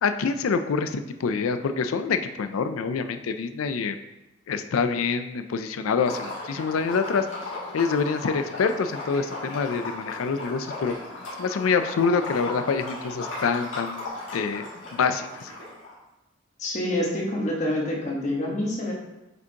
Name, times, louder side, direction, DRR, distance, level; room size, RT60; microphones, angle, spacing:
voice 1, 0.0-4.0 4.5-7.3 7.7-10.9 11.4-14.1 14.3-14.7 14.9-15.5, left 5 dB, 85° left, 9 dB, 0.4 m, -26 dB
Liquid, 6.0-15.9, left 2 dB, 70° left, 2.1 m, -36 dB
voice 2, 16.6-18.9, left 1 dB, 35° left, -2 dB, 1.2 m, -27 dB
8.0 x 5.0 x 2.8 m, 0.97 s
head